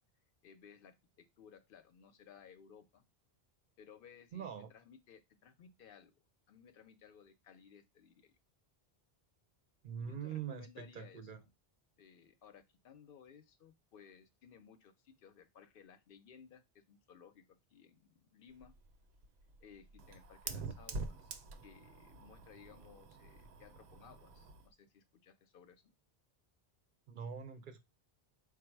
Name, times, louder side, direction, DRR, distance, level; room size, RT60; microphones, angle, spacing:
voice 1, 0.4-3.0 3.8-6.2 6.5-8.3 10.0-11.5 12.0-18.7 19.6-21.3 21.6-25.8, left 7 dB, 65° left, 9 dB, 0.7 m, -59 dB
voice 2, 4.3-4.7 9.8-11.4 27.1-27.8, right 7 dB, 60° right, 8 dB, 0.7 m, -43 dB
Fire, 18.5-24.7, right 3 dB, 90° right, 0.8 m, -47 dB
4.7 x 2.0 x 4.4 m, 0.22 s
omnidirectional pair, 1.1 m